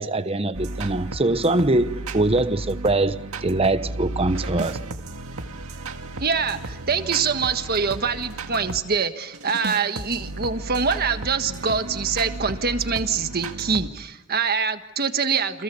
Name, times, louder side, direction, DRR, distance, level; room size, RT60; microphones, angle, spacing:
voice 1, 0.0-4.8, right 2 dB, 25° right, 1.0 m, -23 dB
sound 1, 0.5-8.8 9.3-13.9, right 2 dB, 70° right, 2.0 m, -34 dB
voice 2, 6.2-15.6, right 5 dB, 45° right, 1.6 m, -24 dB
29.5 x 27.0 x 7.1 m
head